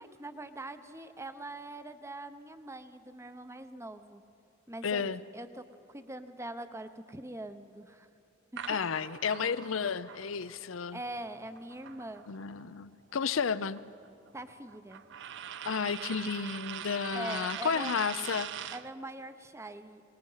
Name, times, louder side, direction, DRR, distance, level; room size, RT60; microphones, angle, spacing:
voice 1, 0.0-4.2 4.7-5.0 5.3-5.6 5.9-8.1 10.9-12.2 14.3-15.0 17.1-18.0 18.7-20.0, right 1 dB, 15° right, 10 dB, 0.7 m, -43 dB
voice 2, 4.8-5.2 8.7-11.0 12.3-13.8 15.6-18.5, left 6 dB, 75° left, 15 dB, 0.6 m, -32 dB
sound 1, 8.6-12.6 12.9-18.9, right 9 dB, 60° right, 0.5 m, -43 dB
24.0 x 19.5 x 5.7 m, 2.7 s
head